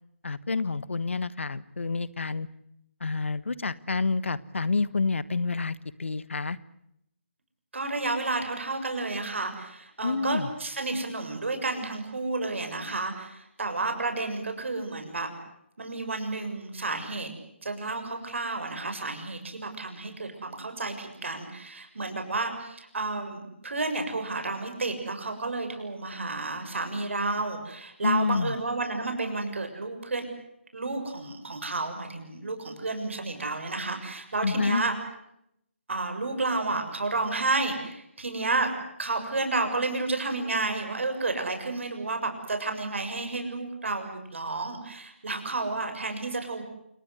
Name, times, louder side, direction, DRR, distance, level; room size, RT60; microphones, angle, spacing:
voice 1, 0.2-2.5 3.0-6.6 10.0-10.5 28.0-28.6 34.4-34.8, left 4 dB, 70° left, 18 dB, 1.4 m, -28 dB
voice 2, 7.7-15.3 15.8-17.3 17.6-30.3 30.7-34.9 35.9-46.6, right 3 dB, 70° right, 6 dB, 6.7 m, -31 dB
28.5 x 20.5 x 8.2 m, 0.78 s
figure-of-eight pair, 150°, 7 cm